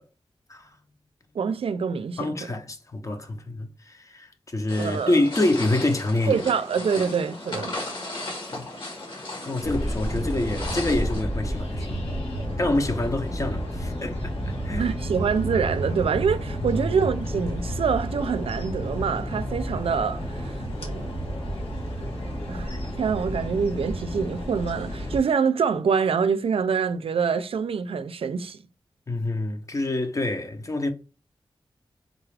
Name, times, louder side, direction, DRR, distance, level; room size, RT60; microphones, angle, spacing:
voice 1, 1.3-2.4 4.8-5.2 6.3-7.8 14.8-21.1 22.5-28.6, right 6 dB, 80° right, 0.4 m, -26 dB
voice 2, 2.2-6.4 7.0-7.1 8.5-8.7 9.4-12.0 12.6-14.9 16.6-16.9 29.1-30.9, left 2 dB, 35° left, 0.6 m, -27 dB
sound 1, 4.7-11.2, left 2 dB, 60° left, 1.4 m, -36 dB
sound 2, 9.6-25.2, equal, 85° left, 1.3 m, -31 dB
3.8 x 2.4 x 3.2 m
wide cardioid pair, 95°, 10 cm